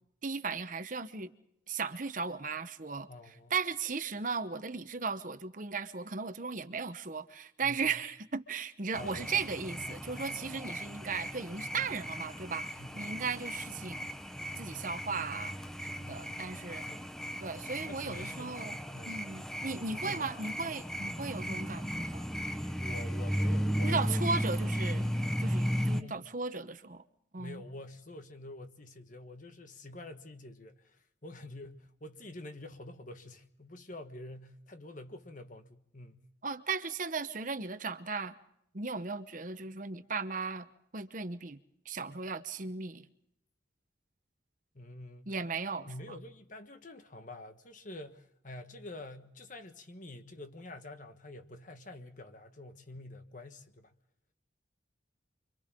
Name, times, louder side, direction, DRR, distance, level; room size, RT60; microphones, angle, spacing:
voice 1, 0.2-1.3 1.7-14.1 14.6-15.6 15.8-16.8 17.4-18.8 19.1-22.3 23.8-25.1 25.4-27.0 27.3-27.6 36.4-38.4 38.7-40.7 40.9-41.6 41.8-43.1 45.3-45.9, right 4 dB, 45° right, 1.0 m, -36 dB
voice 2, 3.1-3.5 7.6-7.9 8.9-9.3 10.2-10.5 12.7-13.2 16.0-16.4 16.9-17.1 17.9-18.7 18.9-19.2 19.9-20.4 22.8-24.6 26.0-26.2 27.4-36.2 44.7-45.3 45.9-53.9, left 1 dB, 45° left, 1.5 m, -47 dB
sound 1, 8.9-26.0, equal, 5° left, 0.8 m, -35 dB
29.5 x 25.0 x 3.8 m
head